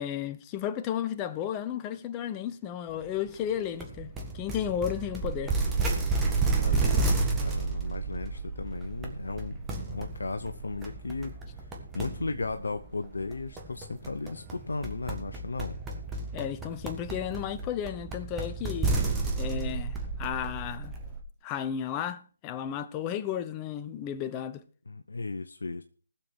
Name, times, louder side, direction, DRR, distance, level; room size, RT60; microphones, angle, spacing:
voice 1, 0.0-5.5 16.3-19.0 19.4-21.0 21.4-24.6, left 9 dB, 20° left, 0.8 m, -33 dB
sound 1, 3.8-21.2, right 3 dB, 10° right, 1.7 m, -32 dB
voice 2, 6.5-11.6 11.9-15.8 24.9-25.8, left 3 dB, 70° left, 0.9 m, -36 dB
19.5 x 7.2 x 4.6 m
figure-of-eight pair, 145°, 0 cm